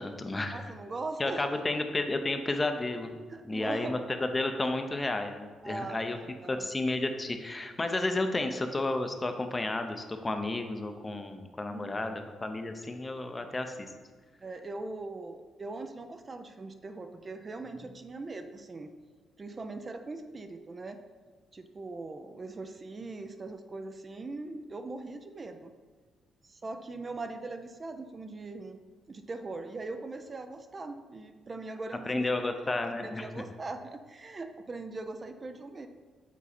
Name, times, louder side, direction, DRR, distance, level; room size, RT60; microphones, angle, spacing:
voice 1, 0.0-0.6 1.2-3.2 3.4-6.2 6.5-13.9 32.1-33.3, left 2 dB, 20° left, 6 dB, 0.6 m, -32 dB
voice 2, 0.5-1.4 3.3-4.0 5.6-6.7 11.7-12.1 14.4-18.9 19.4-21.0 21.5-25.7 26.4-28.8 29.1-32.3 32.8-35.9, right 3 dB, 30° right, 7 dB, 0.4 m, -41 dB
7.2 x 4.0 x 4.2 m, 1.5 s
cardioid pair, 90°, 0 cm